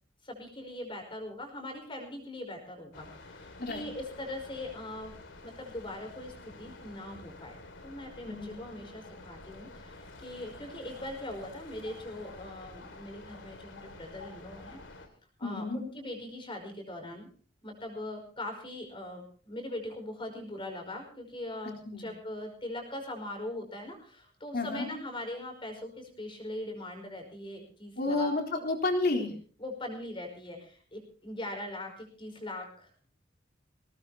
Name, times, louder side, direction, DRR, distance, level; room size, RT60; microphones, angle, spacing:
voice 1, 0.2-5.1 5.4-14.8 15.4-17.3 17.6-28.3 29.6-32.9, left 1 dB, 30° left, 3 dB, 5.2 m, -41 dB
sound 1, 2.9-15.1, left 2 dB, 80° left, 2.5 m, -49 dB
voice 2, 8.3-8.6 15.4-15.8 21.9-22.1 24.5-24.9 28.0-29.3, left 2 dB, 55° left, 2 dB, 3.8 m, -30 dB
20.5 x 19.0 x 2.9 m, 0.43 s
head